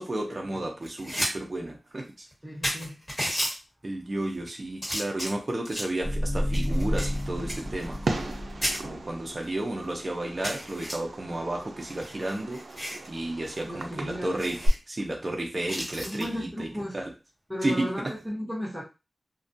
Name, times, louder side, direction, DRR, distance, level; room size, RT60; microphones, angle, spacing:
voice 1, 0.0-2.3 3.8-8.4 8.8-12.6 13.1-16.7 16.9-17.1 17.6-18.1, right 1 dB, 40° right, 1 dB, 0.5 m, -32 dB
sound 1, 0.8-1.3 1.7-1.8 2.3-2.4 2.6-3.5 4.2-4.5 4.8-6.0 6.5-8.4 8.6-8.8 9.4-9.5 9.8-9.9 10.4-10.9 11.8-13.1 13.4-13.6 13.9-14.0 14.4-14.8 15.7-16.2 18.0-18.2, equal, 10° left, 1.5 m, -33 dB
voice 2, 2.4-3.0 13.6-14.3 16.0-17.0 17.5-18.8, equal, 15° right, -6 dB, 0.8 m, -34 dB
sound 2, 6.0-9.1, equal, 30° left, 0.6 m, -30 dB
Fireworks, 6.7-14.7, right 2 dB, 90° right, 0.4 m, -37 dB
2.3 x 2.2 x 2.6 m, 0.27 s
wide cardioid pair, 80°, 0 cm